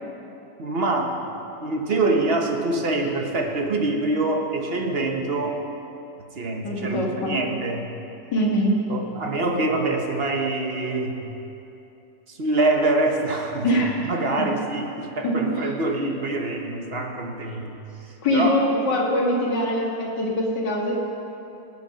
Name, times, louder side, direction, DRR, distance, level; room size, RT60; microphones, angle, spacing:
voice 1, 0.6-1.2 1.6-5.7 6.4-7.9 8.9-11.2 12.3-13.7 14.0-17.8 18.3-18.5, right 2 dB, 40° right, 2 dB, 1.2 m, -25 dB
voice 2, 6.6-7.4 8.3-8.8 13.6-14.5 15.2-15.6 18.2-21.0, equal, 75° left, -3 dB, 2.6 m, -23 dB
18.0 x 8.1 x 5.8 m, 2.9 s
omnidirectional pair, 1.9 m